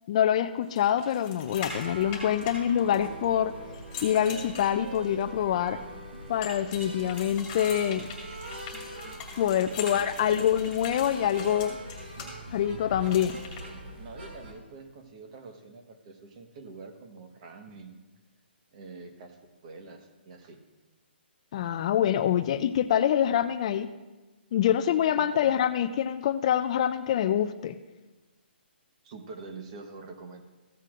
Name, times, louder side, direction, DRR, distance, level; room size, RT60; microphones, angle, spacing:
voice 1, 0.1-3.5 4.0-5.8 6.3-8.1 9.4-11.8 12.5-13.4 21.5-23.9 24.5-27.8, left 10 dB, 35° left, 12 dB, 0.3 m, -25 dB
sound 1, 0.8-3.3 3.7-5.2 6.4-12.3 13.1-13.6, left 5 dB, 20° left, 2.3 m, -42 dB
sound 2, 1.5-14.5, right 1 dB, 80° right, 2.6 m, -42 dB
voice 2, 9.6-10.3 14.0-18.0 18.7-20.6 25.1-25.5 29.0-30.4, right 3 dB, 35° right, 5 dB, 1.2 m, -46 dB
15.0 x 8.2 x 2.5 m, 1.2 s
hypercardioid pair, 155°, 6 cm